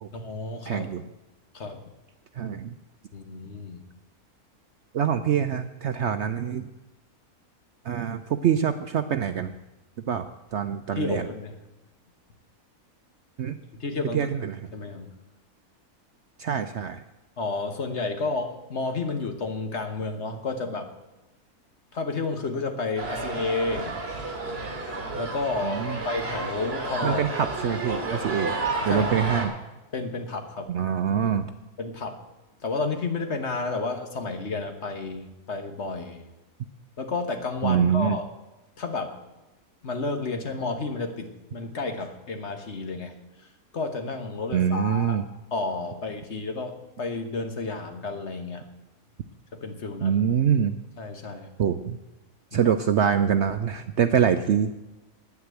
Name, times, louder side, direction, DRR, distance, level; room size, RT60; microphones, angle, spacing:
voice 1, 0.1-0.9 1.5-1.8 3.1-3.8 10.9-11.6 13.7-14.3 14.7-15.1 17.4-20.9 21.9-23.9 24.5-24.7 25.2-27.2 28.9-29.5 29.9-30.7 31.8-32.2 32.6-36.2 37.0-38.3 38.8-39.2 39.8-43.1 43.7-45.2 45.5-48.6 49.5-50.2 51.0-51.5 52.5-52.7, left 3 dB, 50° left, 6 dB, 1.5 m, -31 dB
voice 2, 0.7-1.0 2.4-2.7 4.9-6.7 7.8-9.5 10.1-10.2 10.5-11.3 13.4-13.6 14.1-14.6 16.4-17.0 25.6-26.0 27.0-28.6 28.8-29.5 30.7-31.5 37.6-38.2 44.5-45.2 50.0-50.8 51.6-52.0 52.5-54.7, right 8 dB, 60° right, 9 dB, 0.8 m, -24 dB
sound 1, 23.0-29.5, right 3 dB, 40° right, 2.9 m, -31 dB
9.6 x 9.6 x 8.2 m, 1.0 s
omnidirectional pair, 1.6 m